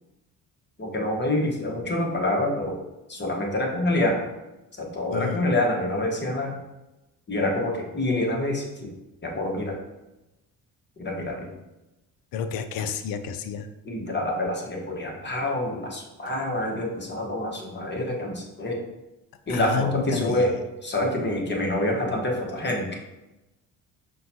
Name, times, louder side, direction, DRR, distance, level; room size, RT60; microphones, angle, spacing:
voice 1, 0.8-2.8 3.1-4.2 4.8-6.5 7.3-8.9 9.2-9.7 11.0-11.5 13.8-18.8 19.5-20.5 20.8-23.0, left 1 dB, 30° left, 0 dB, 1.1 m, -26 dB
voice 2, 5.1-5.4 12.3-13.7 19.5-20.5, left 7 dB, 65° left, 9 dB, 0.5 m, -29 dB
5.5 x 2.3 x 2.7 m, 0.99 s
supercardioid pair, 65°, 38 cm